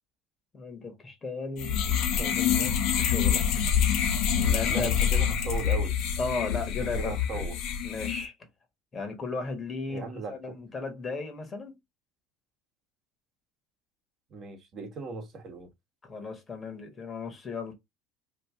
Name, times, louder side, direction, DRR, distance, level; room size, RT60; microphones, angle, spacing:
voice 1, 0.5-3.7 4.4-5.2 6.2-7.5 7.8-8.3 8.9-11.8 16.0-17.7, left 4 dB, 25° left, 1.2 m, -36 dB
sound 1, 1.6-8.2, left 8 dB, 60° left, 1.0 m, -26 dB
voice 2, 4.7-6.0 6.8-7.6 9.9-10.4 14.3-15.7, right 4 dB, 45° right, 1.2 m, -37 dB
3.0 x 2.5 x 3.5 m
supercardioid pair, 110°, 0 cm